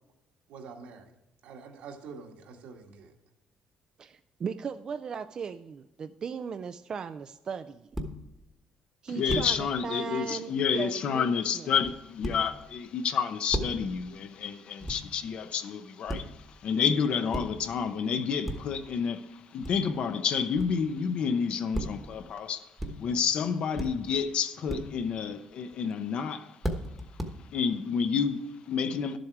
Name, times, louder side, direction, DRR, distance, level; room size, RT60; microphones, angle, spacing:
voice 1, 0.5-1.1 1.4-3.1, right 5 dB, 85° right, 1.9 m, -46 dB
voice 2, 4.0-7.9 9.0-11.7, right 6 dB, 35° right, 0.3 m, -37 dB
sound 1, 7.9-8.3 9.3-9.7 11.8-12.7 13.5-14.0 14.8-15.3 16.1-16.5 17.3-17.8 18.4-18.9 19.6-20.1 20.6-21.0 21.7-22.2 22.8-23.2 23.8-24.2 24.7-25.1 25.7-25.9 26.6-27.3, right 1 dB, 5° right, 1.1 m, -36 dB
voice 3, 9.1-22.7 23.0-26.6 27.5-29.2, left 6 dB, 50° left, 0.8 m, -29 dB
12.0 x 7.8 x 4.8 m
cardioid pair, 165°, 2 cm